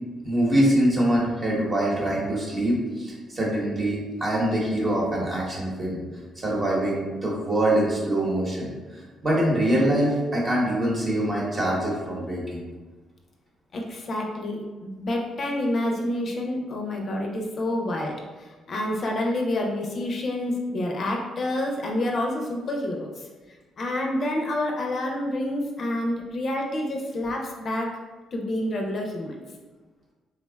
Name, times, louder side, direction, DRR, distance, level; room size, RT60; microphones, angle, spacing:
voice 1, 0.2-6.0 6.4-12.6, right 1 dB, 35° right, -4 dB, 0.9 m, -24 dB
voice 2, 13.7-23.3 23.8-27.9 28.3-29.4, left 1 dB, 50° left, 1 dB, 0.4 m, -28 dB
3.5 x 2.1 x 2.2 m, 1.3 s
cardioid pair, 90°, 0 cm